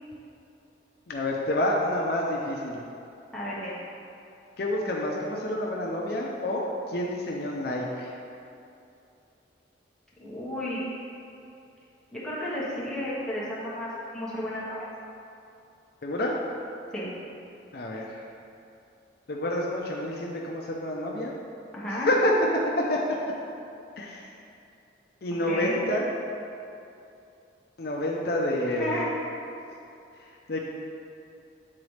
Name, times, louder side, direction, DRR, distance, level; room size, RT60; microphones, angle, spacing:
voice 1, 1.1-2.8 4.6-8.1 16.0-16.4 17.7-18.3 19.3-21.3 21.9-22.3 22.8-23.0 24.0-24.3 25.2-26.1 27.8-29.1 30.2-30.6, left 1 dB, 55° left, -2 dB, 0.5 m, -28 dB
voice 2, 3.3-3.7 10.2-10.9 12.1-14.8 16.9-17.1 21.7-22.1 25.5-25.8 28.6-29.1, left 1 dB, 5° left, -9 dB, 1.2 m, -33 dB
8.5 x 3.9 x 3.2 m, 2.7 s
head